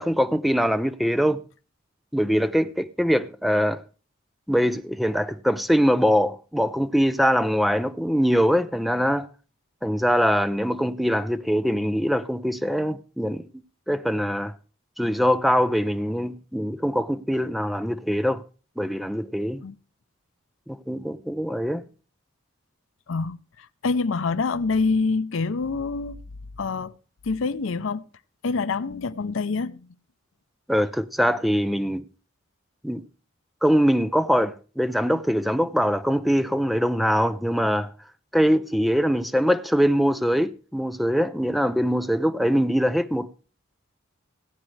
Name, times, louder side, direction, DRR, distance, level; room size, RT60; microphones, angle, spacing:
voice 1, 0.0-1.4 2.1-3.8 4.5-9.3 9.8-13.4 13.9-14.5 15.0-18.4 18.8-19.6 20.7-21.8 30.7-32.0 32.8-33.0 33.6-37.9 38.3-43.3, equal, ahead, 0.4 m, -23 dB
voice 2, 23.1-23.4 23.8-26.2 26.6-26.9 27.2-28.0 28.4-29.8, left 4 dB, 70° left, 0.6 m, -26 dB
18.0 x 8.9 x 3.2 m
head